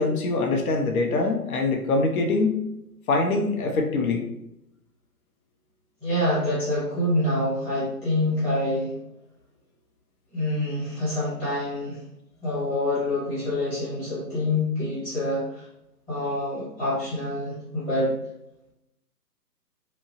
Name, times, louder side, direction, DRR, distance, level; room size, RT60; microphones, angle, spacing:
voice 1, 0.0-2.6 3.1-4.2, left 3 dB, 60° left, 3 dB, 0.6 m, -23 dB
voice 2, 6.0-8.9 10.3-12.0 12.4-15.6 16.1-18.1, left 1 dB, 10° left, -12 dB, 1.1 m, -26 dB
2.8 x 2.2 x 2.8 m, 0.83 s
hypercardioid pair, 155°, 50 cm